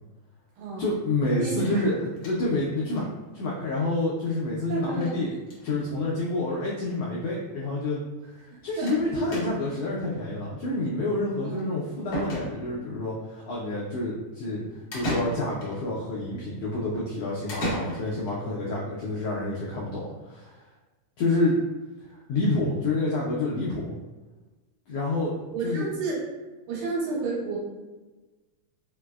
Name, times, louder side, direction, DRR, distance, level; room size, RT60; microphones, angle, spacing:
voice 1, 0.8-3.1 3.3-5.3 5.6-8.0 8.6-14.6 14.9-20.6 21.2-21.5 22.3-23.9 24.9-25.3 25.6-25.9, left 2 dB, 85° left, -5 dB, 1.4 m, -28 dB
voice 2, 1.4-1.8 4.7-5.1 8.5-9.3 11.4-11.6 25.5-26.2 26.7-27.6, right 3 dB, 85° right, -5 dB, 2.4 m, -31 dB
sound 1, 1.6-2.6 3.0-3.1 3.3-3.4 3.7-3.8 4.9-5.2 5.4-5.8 6.7-6.8 7.0-7.1 8.9-9.0 9.3-9.8 11.6-11.7 12.1-12.9 14.9-15.8 17.5-18.4, equal, 65° left, 1.2 m, -34 dB
5.1 x 2.0 x 2.2 m, 1.2 s
omnidirectional pair, 3.4 m